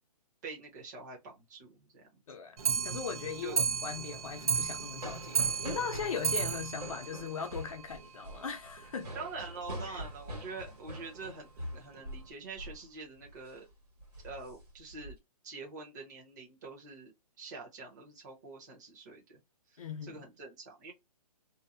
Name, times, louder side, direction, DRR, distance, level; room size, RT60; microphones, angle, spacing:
voice 1, 0.4-2.2 3.4-3.6 9.1-13.7 14.2-15.2 15.4-17.1 17.4-19.4 19.7-20.9, right 4 dB, 30° right, 0.9 m, -45 dB
voice 2, 2.3-2.6 2.8-9.1 9.9-10.0 19.8-20.3, left 6 dB, 60° left, 0.6 m, -39 dB
Clock, 2.6-8.1 8.4-8.5 8.8-8.9 9.2-9.3 9.6-9.7 10.4-10.5 11.2-11.3 11.9-12.0, right 7 dB, 65° right, 0.6 m, -34 dB
sound 1, 4.2-12.3 12.6-12.8 13.2-13.5 14.0-15.1, equal, 85° right, 1.5 m, -45 dB
2.7 x 2.1 x 2.4 m
hypercardioid pair, 170°, 20 cm